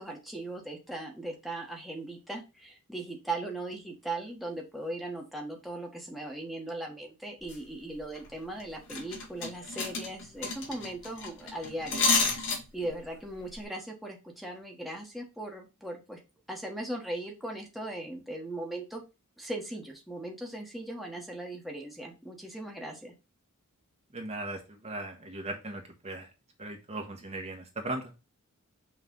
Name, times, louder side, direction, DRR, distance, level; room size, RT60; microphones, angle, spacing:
voice 1, 0.0-12.5 12.7-16.2 16.5-19.0 19.4-23.1, right 1 dB, ahead, 0 dB, 1.2 m, -38 dB
sound 1, 7.4-7.6 8.0-8.3 8.6-8.7 8.9-13.0 13.3-13.5, left 4 dB, 60° left, 2.1 m, -30 dB
voice 2, 24.1-26.3 26.6-28.1, right 2 dB, 30° right, 2 dB, 1.0 m, -38 dB
6.0 x 3.2 x 5.4 m, 0.28 s
head